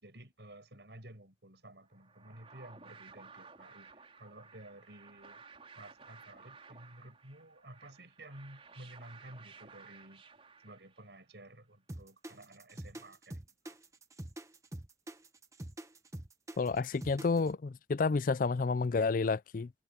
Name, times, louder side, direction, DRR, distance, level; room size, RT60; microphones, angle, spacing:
voice 1, 0.0-5.4 5.8-10.2 10.6-13.8, right 1 dB, 75° right, 5.8 m, -53 dB
sound 1, 1.9-11.3, right 5 dB, 35° right, 4.6 m, -56 dB
sound 2, 11.9-17.5, right 1 dB, 20° right, 1.1 m, -45 dB
voice 2, 16.6-19.7, left 4 dB, 50° left, 0.4 m, -30 dB
head